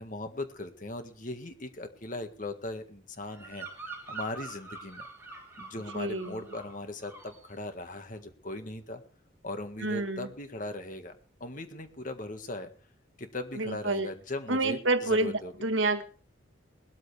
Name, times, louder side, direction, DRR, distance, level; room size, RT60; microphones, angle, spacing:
voice 1, 0.0-3.7 4.1-5.1 5.6-9.0 9.4-11.2 11.4-12.7 13.2-15.5, left 2 dB, 40° left, 7 dB, 1.7 m, -39 dB
Bird vocalization bird call bird song, 3.2-6.8 7.0-7.5, right 4 dB, 10° right, 4.2 m, -44 dB
voice 2, 5.9-6.5 9.8-10.3 13.5-14.1 14.5-16.0, right 2 dB, 75° right, 9 dB, 1.5 m, -29 dB
19.5 x 13.0 x 3.4 m, 0.40 s
head